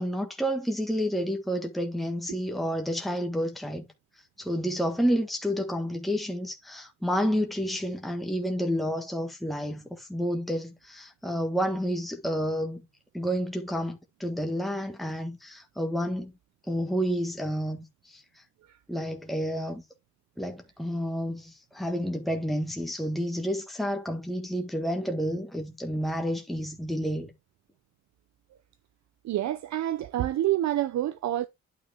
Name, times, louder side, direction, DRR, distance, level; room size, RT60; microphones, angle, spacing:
voice 1, 0.0-3.9 4.4-12.8 13.1-16.3 16.7-18.2 18.9-19.8 20.4-27.3, equal, ahead, 1.4 m, -30 dB
voice 2, 29.2-31.5, right 13 dB, 65° right, 0.7 m, -28 dB
9.3 x 4.7 x 3.5 m
cardioid pair, 90°, 30 cm